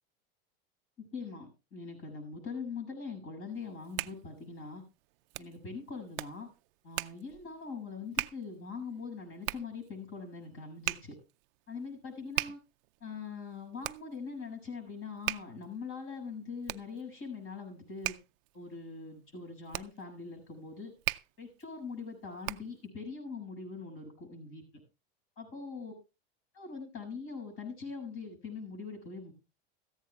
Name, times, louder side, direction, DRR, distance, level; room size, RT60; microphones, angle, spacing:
voice 1, 1.0-4.8 5.4-6.5 6.8-11.2 11.7-12.6 13.0-18.2 18.5-20.9 21.4-24.6 25.4-25.9 26.5-29.3, left 4 dB, 45° left, 3 dB, 7.4 m, -42 dB
Hands, 3.6-22.9, right 22 dB, 70° right, 0.5 m, -41 dB
17.5 x 14.5 x 2.3 m, 0.30 s
supercardioid pair, 120°, 29 cm